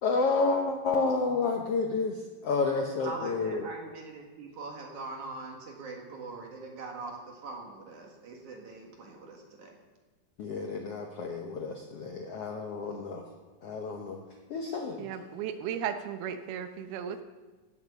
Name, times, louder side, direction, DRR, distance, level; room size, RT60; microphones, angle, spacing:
voice 1, 0.0-3.7 10.4-13.2 13.6-14.2 14.5-15.1, left 4 dB, 85° left, 2 dB, 1.3 m, -30 dB
voice 2, 3.0-9.8, right 3 dB, 60° right, 0 dB, 2.9 m, -42 dB
voice 3, 15.0-17.2, right 8 dB, 85° right, 8 dB, 2.9 m, -35 dB
17.0 x 7.4 x 7.0 m, 1.3 s
omnidirectional pair, 4.3 m